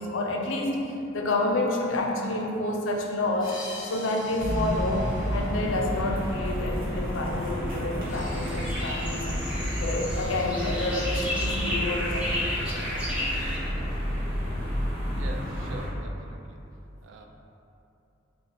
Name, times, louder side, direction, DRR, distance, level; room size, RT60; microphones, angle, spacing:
voice 1, 0.0-3.6 3.8-9.4 9.8-13.1, left 2 dB, 90° left, 1 dB, 0.5 m, -29 dB
sound 1, 3.4-6.5, left 1 dB, 25° left, 1.2 m, -44 dB
sound 2, 4.4-15.9, equal, 50° right, 1.0 m, -30 dB
sound 3, 8.1-13.6, left 1 dB, 5° right, 0.9 m, -33 dB
voice 2, 15.1-16.6 17.0-17.3, right 2 dB, 85° right, 3 dB, 0.4 m, -44 dB
3.7 x 2.4 x 4.0 m, 2.8 s
head